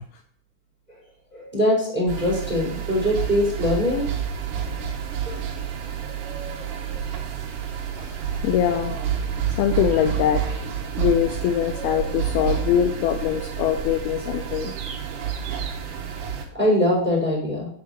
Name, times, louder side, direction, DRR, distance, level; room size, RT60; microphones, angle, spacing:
voice 1, 1.3-4.0 5.2-5.4 16.5-17.7, left 1 dB, 5° right, -5 dB, 3.3 m, -22 dB
sound 1, 2.1-16.4, right 8 dB, 70° right, 2.1 m, -29 dB
voice 2, 8.4-10.4 11.0-14.7 15.0-15.3, left 10 dB, 85° left, 7 dB, 2.2 m, -23 dB
9.3 x 4.8 x 6.5 m, 0.64 s
omnidirectional pair, 5.1 m